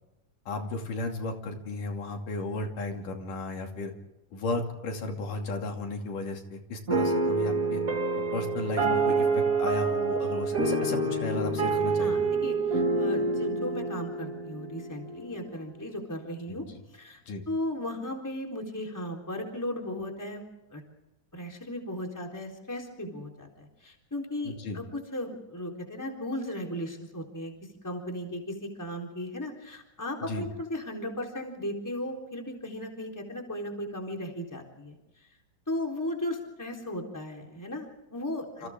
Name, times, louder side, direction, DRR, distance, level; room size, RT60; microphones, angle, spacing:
voice 1, 0.5-3.9 4.3-7.8 8.3-12.1 16.5-16.6 17.3-17.4 24.4-24.8 30.2-30.4 38.6-38.7, left 2 dB, 75° left, 2 dB, 4.2 m, -34 dB
sound 1, 6.9-15.4, right 3 dB, 30° right, 2.0 m, -27 dB
voice 2, 12.0-16.6 16.9-20.4 20.7-20.8 21.3-27.5 27.8-35.0 35.7-38.7, left 1 dB, 5° left, 1 dB, 3.6 m, -36 dB
28.5 x 28.5 x 3.7 m, 0.97 s
omnidirectional pair, 3.7 m